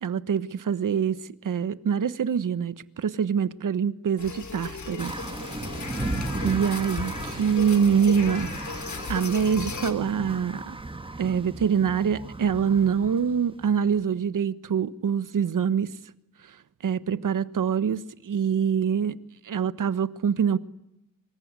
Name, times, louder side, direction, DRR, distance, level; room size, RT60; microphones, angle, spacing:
voice 1, 0.0-5.1 6.4-8.5 9.1-10.8 11.2-15.9 16.8-19.2 19.4-20.6, right 7 dB, 65° right, 1.4 m, -25 dB
sound 1, 4.2-9.9, left 5 dB, 55° left, 3.5 m, -36 dB
sound 2, 5.0-14.1, right 2 dB, 15° right, 1.8 m, -36 dB
25.5 x 23.0 x 9.7 m
wide cardioid pair, 105°, 34 cm